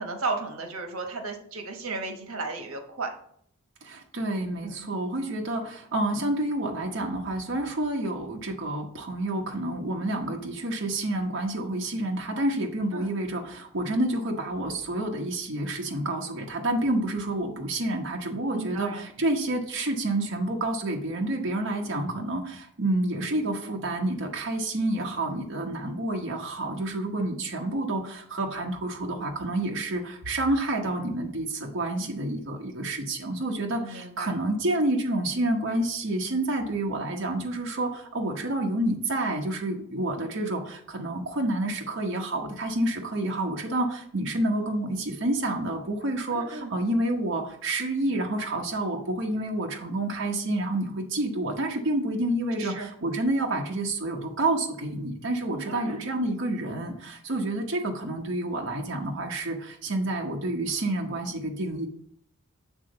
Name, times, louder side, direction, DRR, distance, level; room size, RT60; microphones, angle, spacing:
voice 1, 0.0-3.1 4.6-4.9 12.9-13.1 18.5-19.1 33.8-34.4 46.3-46.7 52.6-52.9 55.5-56.1, right 3 dB, 90° right, 4 dB, 1.2 m, -34 dB
voice 2, 3.8-61.9, right 1 dB, 60° right, 0 dB, 1.0 m, -29 dB
8.5 x 3.8 x 5.3 m, 0.65 s
head